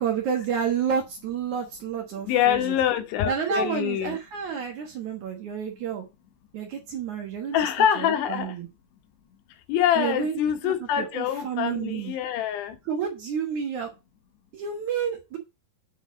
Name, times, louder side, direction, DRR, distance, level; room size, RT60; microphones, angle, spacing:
voice 1, 0.0-2.8 3.3-6.1 6.5-7.6 8.0-8.7 10.0-10.4 10.6-12.1 12.9-13.9 14.5-15.4, right 7 dB, 60° right, 2.3 m, -30 dB
voice 2, 2.2-4.2 7.5-8.6 9.7-12.8, left 10 dB, 85° left, 3.2 m, -25 dB
8.1 x 3.7 x 6.1 m
omnidirectional pair, 4.7 m